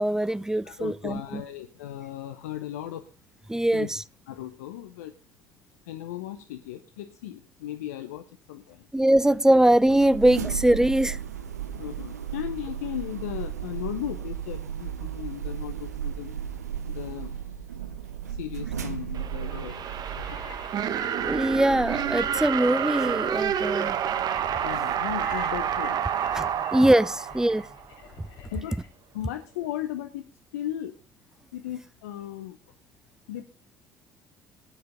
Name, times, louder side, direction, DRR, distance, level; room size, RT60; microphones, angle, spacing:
voice 1, 0.0-1.4 3.5-3.9 8.9-11.2 21.2-24.0 26.3-27.7, right 1 dB, 5° right, 0.6 m, -22 dB
voice 2, 0.6-3.1 3.7-3.9 4.3-5.1 5.8-8.9 10.6-10.7 11.5-16.3 16.9-17.5 18.3-19.8 20.3-20.4 24.6-26.3 28.5-28.8 29.1-31.0 31.5-32.6 33.3-33.4, left 12 dB, 80° left, 0.8 m, -36 dB
sound 1, 9.2-26.0, right 8 dB, 85° right, 0.8 m, -36 dB
sound 2, 19.1-28.0, right 9 dB, 55° right, 1.3 m, -29 dB
sound 3, 19.4-28.9, left 5 dB, 60° left, 4.1 m, -46 dB
16.5 x 9.5 x 3.6 m
hypercardioid pair, 55°, 8 cm